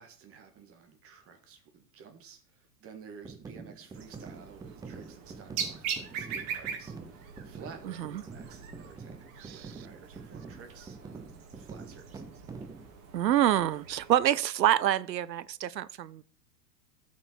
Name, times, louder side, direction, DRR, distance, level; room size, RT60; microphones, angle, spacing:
voice 1, 0.0-12.4, right 6 dB, 25° right, 1.7 m, -52 dB
sound 1, 3.2-12.9, right 4 dB, 10° right, 0.6 m, -46 dB
sound 2, 3.9-14.2, right 7 dB, 50° right, 2.7 m, -42 dB
voice 2, 13.1-16.2, right 12 dB, 90° right, 0.7 m, -26 dB
13.0 x 5.8 x 4.4 m
hypercardioid pair, 115°, 49 cm